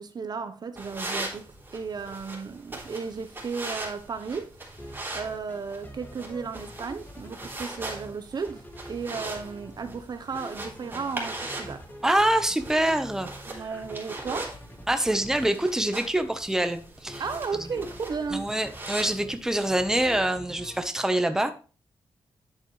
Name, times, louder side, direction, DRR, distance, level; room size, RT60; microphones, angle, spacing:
voice 1, 0.0-1.5 1.7-4.5 5.1-11.9 13.5-14.6 17.2-18.5, right 5 dB, 50° right, 0.9 m, -34 dB
sound 1, 0.7-20.2, right 2 dB, 25° right, 3.5 m, -40 dB
sound 2, 4.8-5.6 5.8-8.1 8.5-10.0 10.3-15.5 17.1-19.4 19.7-20.8, equal, 20° left, 2.0 m, -44 dB
voice 2, 12.0-13.3 14.9-17.2 18.3-21.5, right 1 dB, 5° right, 1.0 m, -25 dB
10.5 x 7.4 x 3.2 m
wide cardioid pair, 105°, 9 cm